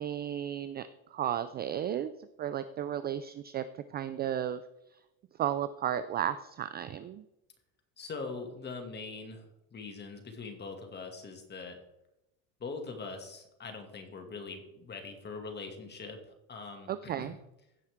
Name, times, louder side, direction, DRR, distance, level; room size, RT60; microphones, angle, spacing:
voice 1, 0.0-2.1 2.4-4.6 4.9-5.0 5.4-7.2 16.9-17.4, right 10 dB, 25° right, 13 dB, 0.3 m, -34 dB
voice 2, 8.0-11.8 12.6-16.2 16.5-17.3, left 4 dB, 25° left, 4 dB, 2.2 m, -42 dB
16.5 x 5.7 x 3.6 m, 0.88 s
supercardioid pair, 120°, 40 cm